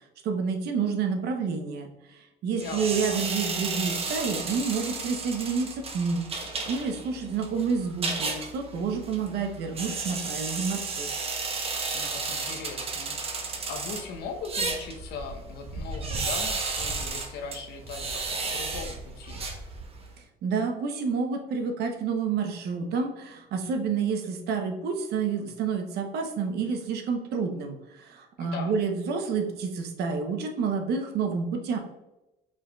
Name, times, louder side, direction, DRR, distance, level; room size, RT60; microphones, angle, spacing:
voice 1, 0.2-1.9 2.4-6.2 6.7-11.1 20.4-31.8, right 5 dB, 75° right, 4 dB, 0.8 m, -29 dB
voice 2, 2.5-3.3 11.9-13.1 13.7-19.4 28.4-28.8, left 5 dB, 75° left, 4 dB, 0.8 m, -39 dB
sound 1, 2.6-20.1, right 4 dB, 35° right, 0.8 m, -33 dB
4.9 x 3.9 x 2.3 m, 0.97 s
cardioid pair, 110°, 17 cm